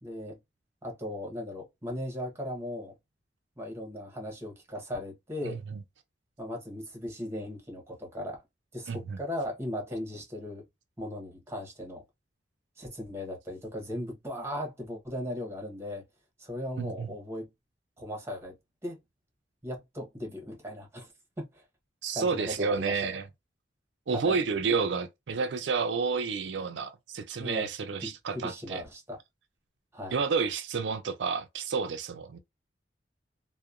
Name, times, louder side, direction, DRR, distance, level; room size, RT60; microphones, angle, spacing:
voice 1, 0.0-0.4 0.8-3.0 3.6-5.6 6.4-8.4 8.7-10.7 11.0-12.0 12.8-16.0 16.4-17.5 18.0-18.6 18.8-19.0 19.6-21.6 22.1-23.1 24.1-24.4 27.4-27.7 28.0-29.2 29.9-30.2, left 1 dB, 15° right, 0.9 m, -37 dB
voice 2, 5.4-5.8 8.9-9.2 16.8-17.1 22.0-23.2 24.1-28.8 30.1-32.4, right 5 dB, 90° right, 0.4 m, -30 dB
2.8 x 2.1 x 2.4 m
head